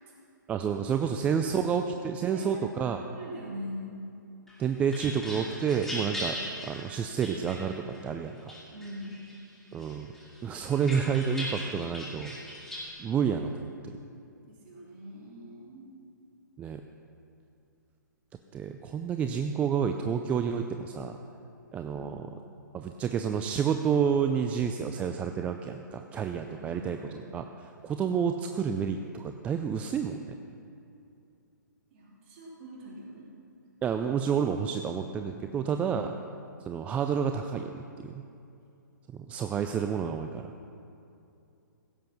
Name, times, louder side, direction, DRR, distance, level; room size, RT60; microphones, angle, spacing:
voice 1, 0.5-3.0 4.6-6.4 6.6-8.5 9.7-10.1 10.4-12.3 13.0-14.0 16.6-16.8 18.5-21.2 21.7-22.4 22.7-30.2 33.8-36.1 36.7-38.2 39.1-40.5, right 7 dB, 10° right, 6 dB, 0.3 m, -30 dB
voice 2, 1.0-1.6 2.3-4.0 8.7-9.2 14.5-15.9 22.0-22.1 26.5-27.2 31.9-33.3, equal, 35° right, -4 dB, 3.5 m, -43 dB
sound 1, 4.5-8.0 8.5-9.4 9.8-12.9, equal, 5° left, 2.5 m, -39 dB
16.0 x 7.6 x 6.0 m, 2.6 s
figure-of-eight pair, 125°, 11 cm